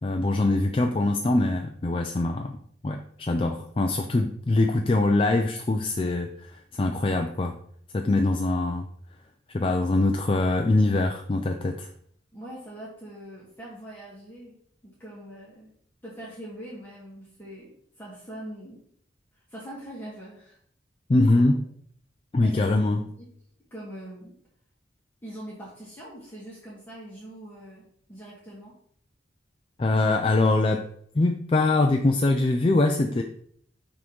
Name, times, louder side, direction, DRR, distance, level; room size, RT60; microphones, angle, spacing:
voice 1, 0.0-2.6 2.8-7.5 7.9-8.9 9.5-11.9 21.1-21.6 22.3-23.0 29.8-30.9 31.1-33.2, left 2 dB, 30° left, 4 dB, 0.4 m, -23 dB
voice 2, 12.3-14.5 14.8-15.7 16.0-17.7 18.0-18.8 19.5-20.6 21.3-21.5 22.4-23.2 23.7-24.3 25.2-28.7, right 1 dB, 10° left, -8 dB, 1.5 m, -42 dB
6.1 x 3.7 x 4.5 m, 0.63 s
head